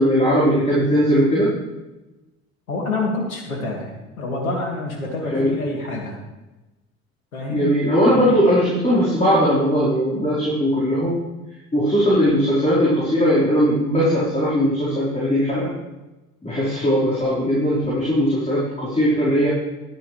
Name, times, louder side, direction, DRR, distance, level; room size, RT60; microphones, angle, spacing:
voice 1, 0.0-1.5 5.3-5.6 7.5-11.2 11.7-15.7 16.4-19.5, equal, 15° left, -9 dB, 4.9 m, -19 dB
voice 2, 2.7-6.2 7.3-7.7, left 2 dB, 85° left, 0 dB, 2.5 m, -27 dB
12.5 x 12.0 x 3.4 m, 1.1 s
figure-of-eight pair, 60°, 41 cm